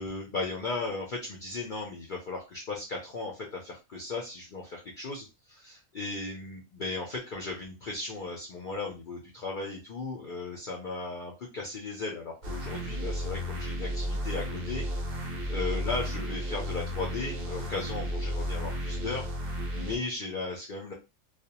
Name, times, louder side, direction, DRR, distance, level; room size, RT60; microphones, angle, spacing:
voice 1, 0.0-19.3 19.7-20.9, left 3 dB, 65° left, -1 dB, 0.5 m, -36 dB
sound 1, 12.4-20.0, equal, 55° right, 0.7 m, -33 dB
2.4 x 2.1 x 2.8 m, 0.27 s
omnidirectional pair, 1.4 m